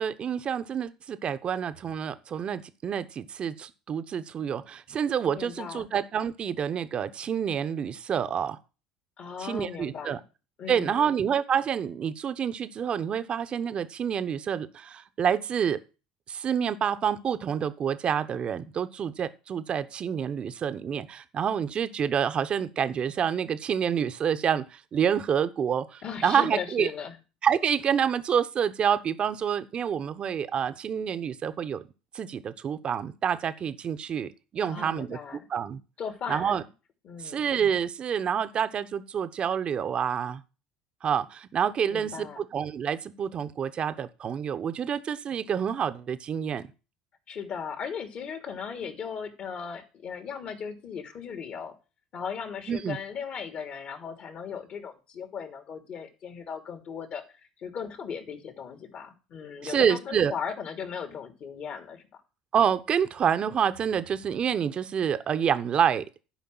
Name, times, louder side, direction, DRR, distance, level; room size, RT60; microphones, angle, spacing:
voice 1, 0.0-8.6 9.4-10.2 10.7-15.8 16.3-26.9 27.4-31.8 32.1-35.2 35.5-35.8 36.3-36.6 37.2-40.4 41.0-46.7 52.7-53.0 59.6-60.3 62.5-66.0, right 8 dB, 40° right, 12 dB, 1.1 m, -28 dB
voice 2, 5.3-5.9 9.2-10.2 10.6-11.1 26.0-27.2 34.6-35.4 36.0-36.7 37.0-37.4 41.9-42.4 47.3-51.7 52.1-57.2 57.6-62.2, left 6 dB, 50° left, 5 dB, 3.1 m, -37 dB
11.5 x 5.2 x 7.9 m, 0.32 s
hypercardioid pair, 75°, 3 cm